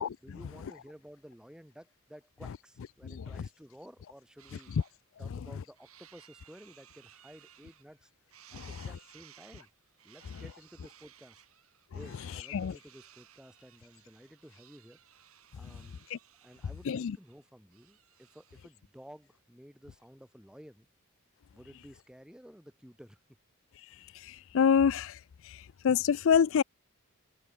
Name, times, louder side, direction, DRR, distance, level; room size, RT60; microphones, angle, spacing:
voice 1, 0.2-4.8 5.2-8.1 8.5-9.7 10.0-11.4 11.9-15.0 15.5-16.0 16.4-20.9 21.5-23.2, equal, 5° right, 3.4 m, -53 dB
sound 1, 4.4-4.9 5.4-8.0 8.3-18.8, right 11 dB, 70° right, 5.3 m, -59 dB
voice 2, 16.9-17.2 24.3-25.2 25.8-26.6, left 7 dB, 60° left, 0.4 m, -26 dB
head